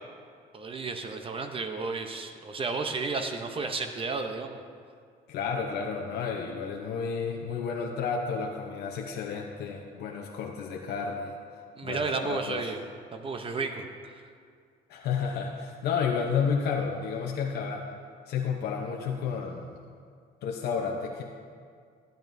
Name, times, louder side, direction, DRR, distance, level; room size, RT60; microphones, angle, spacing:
voice 1, 0.5-4.6 11.8-12.8 13.1-14.2, right 4 dB, 30° right, 6 dB, 0.7 m, -33 dB
voice 2, 5.3-11.4 11.8-12.6 14.9-17.9 18.3-19.8 20.4-21.2, left 6 dB, 75° left, 1 dB, 0.8 m, -31 dB
14.5 x 9.1 x 2.6 m, 2.2 s
cardioid pair, 110°, 17 cm